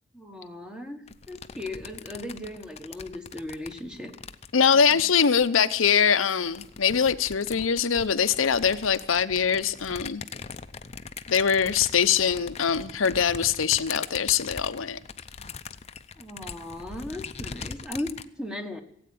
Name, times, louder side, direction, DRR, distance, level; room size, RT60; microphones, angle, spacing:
voice 1, 0.1-4.1 4.7-5.0 16.2-18.1 18.4-18.8, left 1 dB, 5° right, 6 dB, 1.4 m, -37 dB
sound 1, 1.1-5.9 6.4-18.3, left 5 dB, 30° left, 0.6 m, -41 dB
voice 2, 4.5-10.2 11.3-15.0, left 7 dB, 85° left, 10 dB, 0.7 m, -23 dB
17.0 x 8.6 x 8.6 m, 0.76 s
head